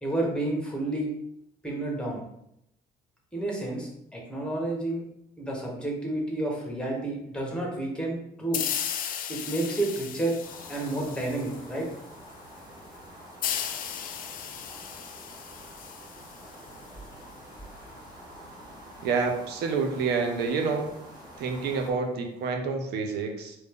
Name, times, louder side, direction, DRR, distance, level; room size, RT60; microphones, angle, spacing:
voice 1, 0.0-1.1 1.6-2.2 3.3-5.0 5.4-8.6 9.3-10.4 10.7-11.9, right 2 dB, 5° left, -2 dB, 1.3 m, -30 dB
sound 1, 8.5-11.9 13.4-16.9, left 9 dB, 55° left, 0.4 m, -35 dB
sound 2, 10.4-21.9, right 1 dB, 25° right, 1.6 m, -47 dB
voice 2, 19.0-20.9 21.4-23.6, right 4 dB, 80° right, 4 dB, 0.6 m, -28 dB
4.5 x 2.6 x 3.6 m, 0.79 s
cardioid pair, 110°, 17 cm